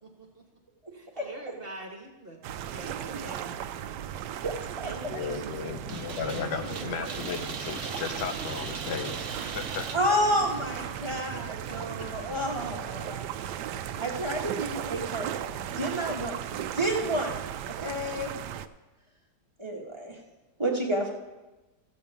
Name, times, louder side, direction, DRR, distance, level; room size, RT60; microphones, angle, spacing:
voice 1, 0.0-0.4 0.9-3.6 4.8-5.8 6.2-7.0 11.0-11.4 12.0-12.1, right 2 dB, 35° right, 1 dB, 1.4 m, -43 dB
sound 1, 2.4-18.7, right 10 dB, 80° right, 1.2 m, -36 dB
voice 2, 4.4-4.9 9.9-13.3 14.0-17.4 17.8-18.3 19.6-20.2 20.6-21.1, equal, 20° right, -1 dB, 1.2 m, -30 dB
voice 3, 5.1-10.0, left 7 dB, 80° left, 7 dB, 1.4 m, -35 dB
sound 2, 5.9-10.9, right 5 dB, 55° right, 1.0 m, -39 dB
14.5 x 5.2 x 7.0 m, 1.1 s
omnidirectional pair, 1.8 m